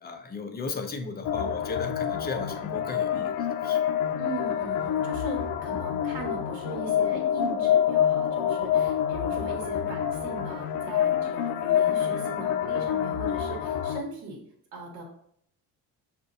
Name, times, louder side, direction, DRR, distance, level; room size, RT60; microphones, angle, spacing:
voice 1, 0.0-3.3 3.6-3.8, left 4 dB, 25° left, 5 dB, 0.5 m, -35 dB
sound 1, 1.2-14.0, left 9 dB, 80° left, 0.5 m, -27 dB
voice 2, 4.2-14.4 14.7-15.0, right 2 dB, 70° right, 0 dB, 1.2 m, -39 dB
6.4 x 2.5 x 2.6 m, 0.68 s
cardioid pair, 120°, 39 cm